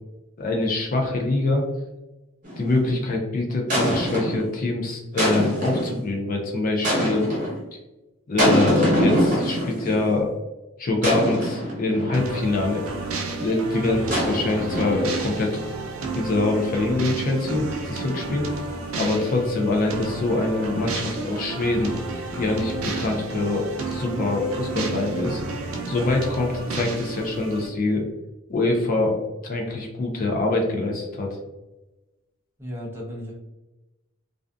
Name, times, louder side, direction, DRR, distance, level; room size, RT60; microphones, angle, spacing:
voice 1, 0.4-1.6 2.6-7.3 8.3-10.3 10.8-12.8 13.4-15.7 16.2-18.5 19.0-21.9 22.4-25.4 25.9-28.0 28.5-29.2 29.4-31.4, left 2 dB, 40° left, 0 dB, 0.4 m, -24 dB
sound 1, 2.4-2.8 3.7-4.5 5.2-6.0 6.8-7.6 8.4-10.0 11.0-12.3 14.1-15.3, equal, 40° right, 0.9 m, -24 dB
sound 2, 12.1-27.7, right 3 dB, 75° right, 0.4 m, -31 dB
voice 2, 13.7-14.0 32.6-33.3, equal, 10° right, -4 dB, 0.7 m, -34 dB
2.5 x 2.3 x 2.3 m, 1.0 s
head